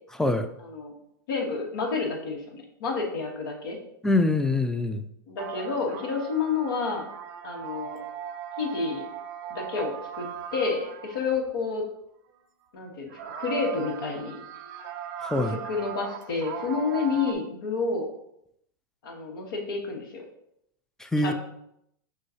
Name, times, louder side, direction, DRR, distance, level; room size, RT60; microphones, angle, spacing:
voice 1, 0.6-0.9 1.3-3.8 5.3-7.1 7.4-8.0 8.6-9.0 9.5-10.3 10.5-11.8 12.7-14.4 15.3-18.1 19.0-20.2 21.2-21.3, left 4 dB, 70° left, 1 dB, 1.3 m, -29 dB
voice 2, 4.0-5.0 15.2-15.6 21.0-21.3, left 2 dB, 5° left, 7 dB, 0.4 m, -24 dB
sound 1, 5.4-11.4 13.1-17.3, right 8 dB, 55° right, 0.5 m, -38 dB
6.1 x 2.3 x 2.8 m, 0.75 s
hypercardioid pair, 105°, 12 cm